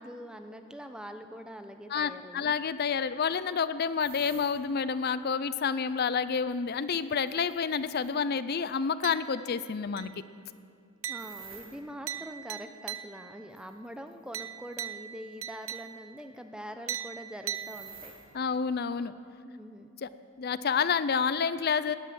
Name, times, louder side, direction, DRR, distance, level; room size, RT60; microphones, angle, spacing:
voice 1, 0.0-2.5 11.1-18.1 19.4-19.9, equal, 5° right, 7 dB, 0.7 m, -44 dB
voice 2, 1.9-10.1 18.3-19.1 20.0-20.1 20.4-22.0, left 6 dB, 45° left, 14 dB, 0.4 m, -29 dB
sound 1, 4.0-4.6 6.5-8.2 11.2-11.8 13.6-14.3 14.7-14.8 15.6-15.9 17.5-18.3, right 6 dB, 45° right, 2.9 m, -50 dB
sound 2, 9.0-9.6 10.0-10.4 11.0-13.5 14.3-16.3 16.9-18.3, right 10 dB, 80° right, 0.6 m, -40 dB
18.5 x 10.0 x 7.8 m, 2.4 s
head